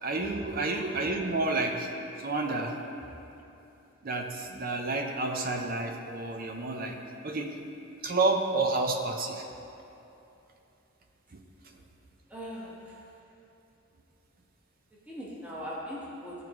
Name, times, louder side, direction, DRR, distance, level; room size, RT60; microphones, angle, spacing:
voice 1, 0.0-1.9 2.2-2.7 4.0-7.0 7.2-7.5 8.0-9.4 11.3-11.4, right 3 dB, 45° right, 3 dB, 0.6 m, -30 dB
voice 2, 12.3-13.0 15.1-16.3, equal, 5° right, -8 dB, 1.2 m, -40 dB
13.5 x 4.6 x 3.0 m, 2.8 s
head